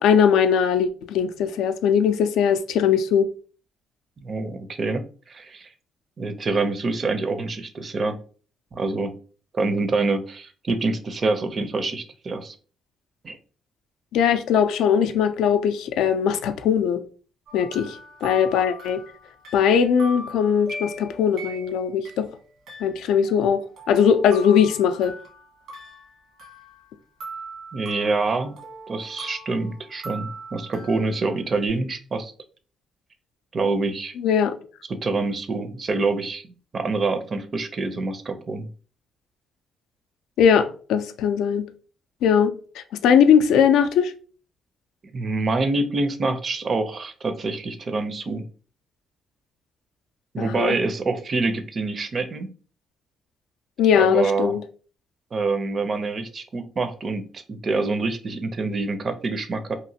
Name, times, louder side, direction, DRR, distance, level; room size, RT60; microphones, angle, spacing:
voice 1, 0.0-3.3 14.1-17.0 17.5-19.0 19.5-22.3 22.8-25.1 34.2-34.5 40.4-41.7 42.2-44.1 50.4-50.8 53.8-54.6, left 7 dB, 85° left, 0.3 m, -20 dB
voice 2, 4.2-5.7 6.2-8.2 8.7-9.1 9.5-12.6 13.2-13.4 27.7-28.5 28.9-32.3 33.5-34.1 34.9-36.4 36.7-38.7 45.1-48.4 50.3-52.5 53.9-54.6 55.3-59.7, right 3 dB, 40° right, 0.5 m, -26 dB
sound 1, 17.5-22.2 22.7-26.9 27.2-31.7, equal, 80° right, 1.3 m, -40 dB
2.9 x 2.4 x 2.7 m
cardioid pair, 90°, 0 cm